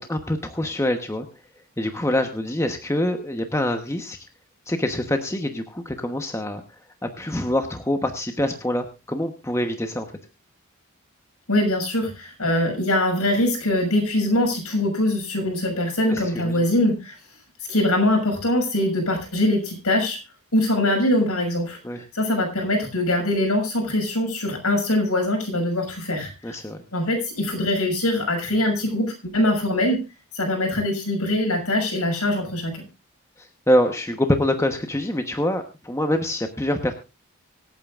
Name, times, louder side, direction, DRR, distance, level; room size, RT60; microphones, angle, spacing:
voice 1, 0.1-1.3 1.8-4.2 4.7-6.6 7.0-10.1 16.1-16.6 21.8-22.0 26.4-26.8 33.4-36.9, left 1 dB, 15° left, 6 dB, 1.1 m, -25 dB
voice 2, 11.5-17.2 17.7-20.2 20.5-26.6 26.9-30.0 30.3-32.8, left 1 dB, 90° left, 2 dB, 6.4 m, -23 dB
25.5 x 8.8 x 2.5 m, 0.27 s
head